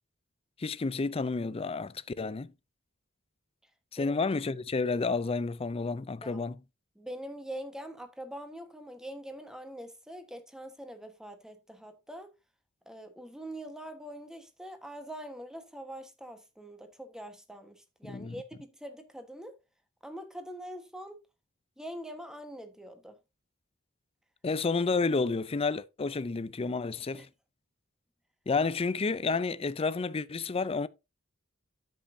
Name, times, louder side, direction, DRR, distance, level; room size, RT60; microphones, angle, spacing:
voice 1, 0.6-2.5 3.9-6.6 18.0-18.4 24.4-27.3 28.5-30.9, left 4 dB, 30° left, 0.4 m, -30 dB
voice 2, 7.0-12.3 12.9-19.6 20.0-21.2 21.8-23.2 27.1-27.3, right 1 dB, 5° right, 1.3 m, -44 dB
10.0 x 7.7 x 2.7 m
head